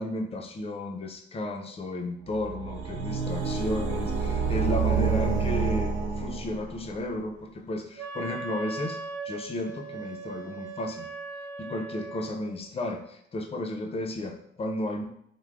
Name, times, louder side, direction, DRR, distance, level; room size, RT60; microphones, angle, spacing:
voice 1, 0.0-11.1 11.6-15.0, left 1 dB, 30° left, 4 dB, 0.4 m, -33 dB
sound 1, 2.3-6.9, right 5 dB, 90° right, 0.4 m, -28 dB
Wind instrument woodwind instrument, 8.0-12.5, right 4 dB, 40° right, 1.1 m, -39 dB
3.2 x 2.0 x 2.4 m, 0.70 s
cardioid pair, 90°, 20 cm